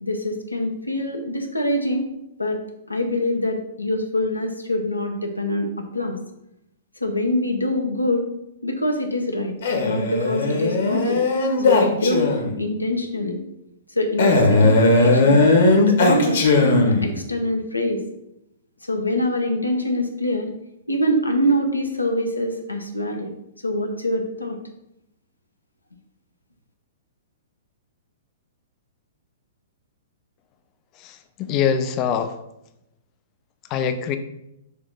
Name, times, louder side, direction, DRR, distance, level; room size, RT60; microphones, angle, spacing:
voice 1, 0.0-2.1 2.4-2.6 2.9-6.2 7.0-8.3 8.6-9.5 9.8-11.2 11.6-13.4 13.9-15.4 16.0-18.0 18.8-20.5 20.9-23.3 23.6-24.6, left 1 dB, 85° left, 3 dB, 0.9 m, -24 dB
Male speech man speaking, 9.6-12.6 14.2-17.2, left 2 dB, 60° left, 1.3 m, -18 dB
voice 2, 31.0-32.3 33.7-34.2, left 7 dB, 30° left, 9 dB, 0.6 m, -24 dB
6.6 x 2.9 x 5.2 m, 0.83 s
figure-of-eight pair, 110°, 0 cm